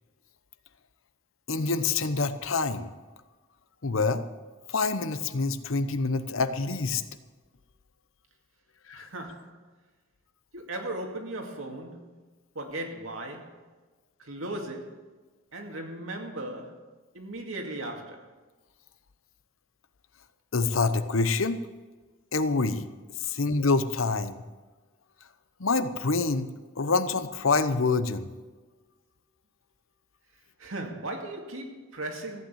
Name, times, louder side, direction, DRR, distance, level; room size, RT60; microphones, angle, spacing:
voice 1, 1.5-2.9 3.8-4.2 4.7-7.0 8.9-9.1 20.5-21.6 22.3-22.8 23.3-24.4 25.6-26.5 26.8-28.3, left 3 dB, 75° left, 0.9 m, -26 dB
voice 2, 8.9-9.6 10.5-12.2 12.6-13.6 14.2-15.0 15.5-16.8 17.1-18.3 30.6-32.4, right 1 dB, 75° right, 2.3 m, -37 dB
15.0 x 9.0 x 7.5 m
head